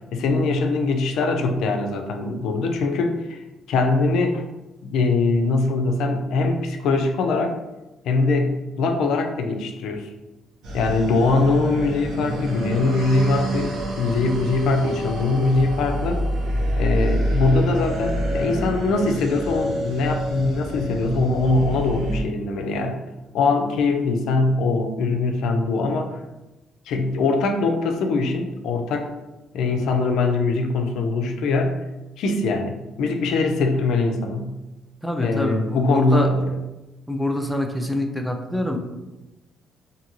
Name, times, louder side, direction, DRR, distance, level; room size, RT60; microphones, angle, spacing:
voice 1, 0.1-4.4 4.8-7.6 8.1-10.1 10.7-16.2 16.8-23.0 23.3-26.2 26.9-29.1 29.5-31.8 32.2-34.6 35.2-36.4, left 3 dB, 80° left, 5 dB, 0.3 m, -22 dB
sound 1, 10.6-22.2, right 1 dB, 80° right, 0.8 m, -27 dB
voice 2, 35.0-36.3 37.1-38.8, left 1 dB, ahead, 3 dB, 0.3 m, -25 dB
2.6 x 2.5 x 2.9 m, 1.0 s
cardioid pair, 105°, 0 cm